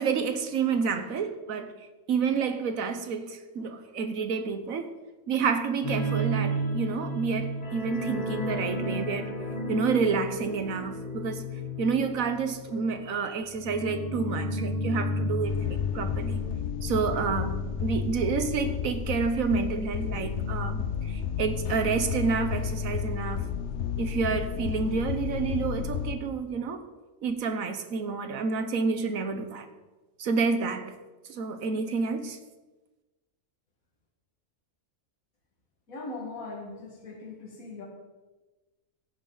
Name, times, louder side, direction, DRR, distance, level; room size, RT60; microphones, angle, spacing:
voice 1, 0.0-1.7 2.1-4.9 5.3-9.3 9.7-11.5 11.8-16.4 16.8-23.4 24.0-26.8 27.2-29.7 30.2-30.9 31.3-32.4, right 5 dB, 75° right, 9 dB, 1.4 m, -29 dB
sound 1, 5.8-19.1 19.4-19.6 20.0-20.1, equal, 30° left, 1.5 m, -33 dB
sound 2, 15.5-26.2, left 7 dB, 60° left, 1.0 m, -32 dB
voice 2, 35.9-37.8, left 3 dB, 85° left, 0 dB, 2.2 m, -40 dB
16.0 x 9.5 x 3.9 m, 1.2 s
omnidirectional pair, 1.4 m